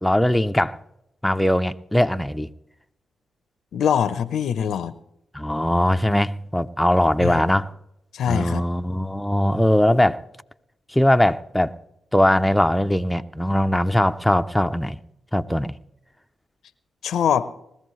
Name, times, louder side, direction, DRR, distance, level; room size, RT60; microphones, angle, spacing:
voice 1, 0.0-0.8 1.2-2.5 5.3-7.7 8.3-10.2 10.9-11.7 12.1-15.0 15.3-15.7, left 1 dB, 5° left, 0.6 m, -20 dB
voice 2, 3.7-4.9 7.2-7.4 8.1-8.6 17.0-17.5, left 8 dB, 75° left, 0.6 m, -23 dB
20.5 x 14.5 x 3.2 m
hypercardioid pair, 40°, 0 cm